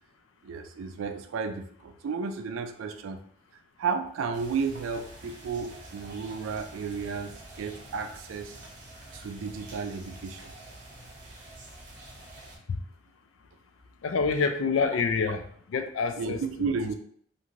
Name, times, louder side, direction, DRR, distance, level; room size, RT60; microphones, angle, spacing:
voice 1, 0.4-3.2 3.8-8.6 9.1-10.5 16.2-16.9, right 5 dB, 85° right, 7 dB, 0.3 m, -33 dB
sound 1, 4.3-12.6, right 1 dB, 40° right, 0.7 m, -47 dB
voice 2, 14.0-15.4 15.7-16.7, left 5 dB, 80° left, 7 dB, 0.4 m, -27 dB
2.6 x 2.5 x 3.0 m, 0.63 s
head